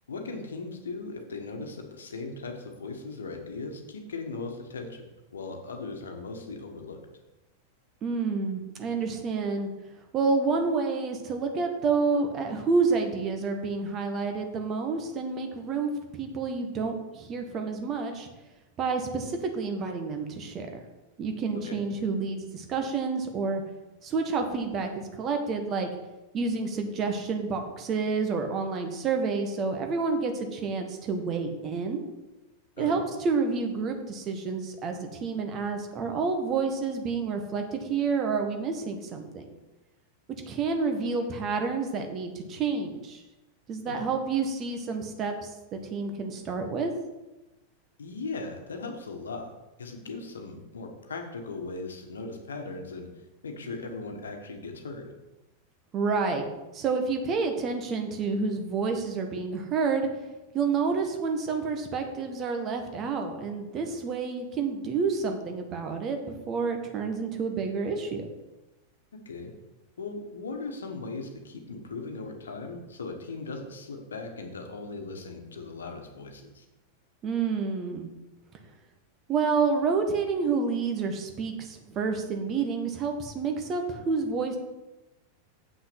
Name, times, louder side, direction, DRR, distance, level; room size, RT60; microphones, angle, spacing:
voice 1, 0.1-7.0 21.5-21.8 32.8-33.0 43.9-44.0 48.0-49.5 49.8-53.1 53.4-55.1 69.2-69.5 70.0-76.6, left 3 dB, 70° left, 4 dB, 1.4 m, -38 dB
voice 2, 8.0-9.7 10.1-18.3 18.8-20.8 21.2-23.6 24.0-25.9 26.3-32.0 32.8-39.4 40.5-43.2 43.7-46.9 55.9-56.5 56.7-60.1 60.5-68.3 77.2-78.1 79.3-84.6, right 4 dB, 30° right, 5 dB, 1.5 m, -29 dB
7.8 x 6.0 x 6.1 m, 1.0 s
figure-of-eight pair, 90°, 0 cm